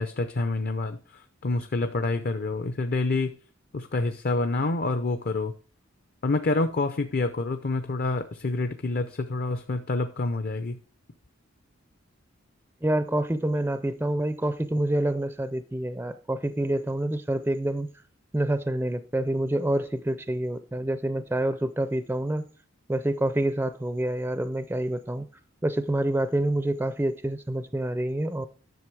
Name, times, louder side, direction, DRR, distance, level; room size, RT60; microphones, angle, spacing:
voice 1, 0.0-3.3 3.7-5.5 6.2-10.8, left 2 dB, 50° left, 0.6 m, -27 dB
voice 2, 12.8-17.9 18.3-22.4 22.9-25.3 25.6-28.5, right 1 dB, 10° right, 0.4 m, -27 dB
11.0 x 6.6 x 4.7 m
head